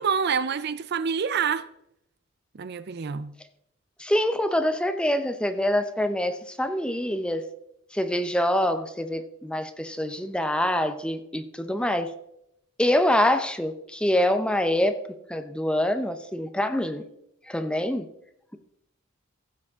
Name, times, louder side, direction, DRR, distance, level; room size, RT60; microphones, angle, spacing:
voice 1, 0.0-1.7 2.5-3.3, right 6 dB, 55° right, 0.5 m, -27 dB
voice 2, 4.0-7.4 7.9-12.1 12.8-14.9 15.3-17.0 17.5-18.0, left 1 dB, 5° left, 0.7 m, -25 dB
15.5 x 7.4 x 3.6 m
head